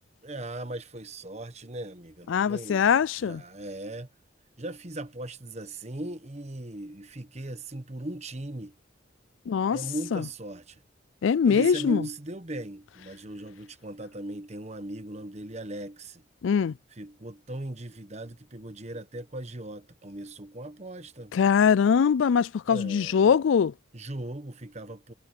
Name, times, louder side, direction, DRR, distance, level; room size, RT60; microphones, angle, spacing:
voice 1, 0.2-2.9 3.2-4.1 4.6-8.7 9.7-10.8 11.4-16.2 17.0-21.3 22.7-23.3 23.9-25.1, right 1 dB, 35° right, 1.3 m, -38 dB
voice 2, 2.3-3.4 9.5-9.8 10.1-10.2 11.2-12.1 16.4-16.7 21.3-23.7, left 7 dB, 80° left, 0.4 m, -22 dB
head